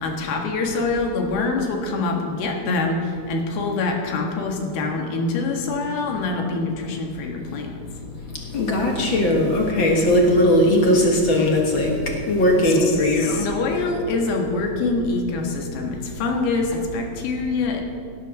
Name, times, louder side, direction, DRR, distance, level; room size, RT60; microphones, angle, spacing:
voice 1, 0.0-7.8 13.2-17.8, left 3 dB, 80° left, 2 dB, 3.5 m, -25 dB
voice 2, 8.3-13.5, left 1 dB, 60° left, 1 dB, 1.3 m, -19 dB
17.0 x 8.9 x 6.4 m, 2.3 s
omnidirectional pair, 4.4 m